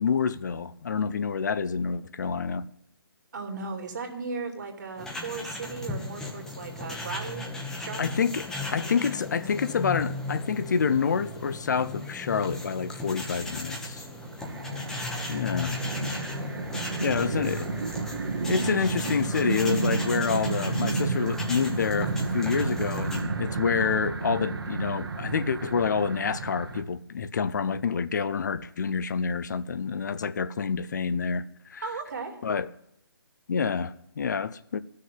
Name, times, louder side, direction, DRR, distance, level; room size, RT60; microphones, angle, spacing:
voice 1, 0.0-2.6 8.0-14.0 15.3-15.8 16.1-16.3 17.0-17.7 18.5-31.4 31.7-31.8 32.4-32.7 33.5-34.8, left 6 dB, 50° left, 0.6 m, -28 dB
voice 2, 3.3-7.5 7.8-8.1 14.4-14.6 17.0-18.2 31.8-32.4, right 4 dB, 50° right, 2.7 m, -37 dB
sound 1, 5.0-23.2, left 2 dB, 5° left, 1.1 m, -36 dB
sound 2, 14.4-26.8, right 4 dB, 75° right, 1.8 m, -32 dB
13.5 x 6.6 x 9.3 m
hypercardioid pair, 165°, 12 cm